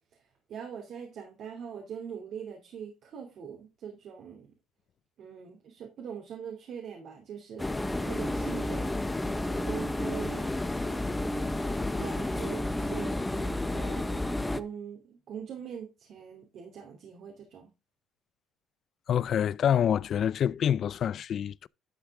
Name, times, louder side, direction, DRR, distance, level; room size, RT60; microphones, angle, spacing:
voice 1, 0.5-4.5 5.2-7.7 8.1-8.9 9.5-10.5 11.2-11.6 12.0-14.2 14.5-17.7, right 7 dB, 60° right, 2.8 m, -42 dB
sound 1, 7.6-14.6, left 1 dB, 10° left, 0.8 m, -31 dB
voice 2, 19.1-21.7, left 9 dB, 50° left, 0.4 m, -26 dB
11.5 x 6.0 x 3.7 m
cardioid pair, 105°, 0 cm